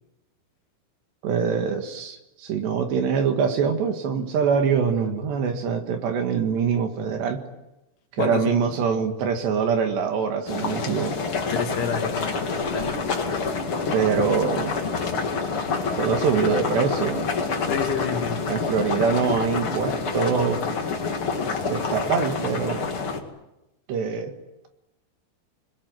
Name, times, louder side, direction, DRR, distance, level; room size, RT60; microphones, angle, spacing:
voice 1, 1.2-7.4 8.1-11.2 13.9-14.7 16.0-17.3 18.5-20.6 21.7-22.8 23.9-24.3, right 6 dB, 65° right, 5 dB, 3.7 m, -24 dB
voice 2, 8.2-8.6 11.5-12.4 12.7-12.9 17.6-18.6, left 6 dB, 60° left, 4 dB, 3.6 m, -29 dB
sound 1, 10.5-23.2, left 4 dB, 40° left, 2.1 m, -27 dB
26.5 x 21.5 x 9.4 m, 0.95 s
omnidirectional pair, 5.8 m